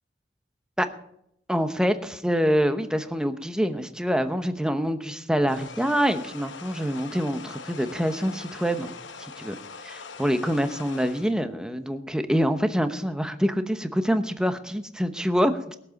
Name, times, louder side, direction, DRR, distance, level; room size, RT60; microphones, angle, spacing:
voice 1, 1.5-8.9 9.4-9.5 9.8-15.8, equal, 5° right, 8 dB, 0.9 m, -25 dB
sound 1, 5.5-11.3, left 5 dB, 75° left, 0.9 m, -42 dB
20.5 x 7.5 x 5.3 m, 0.73 s
head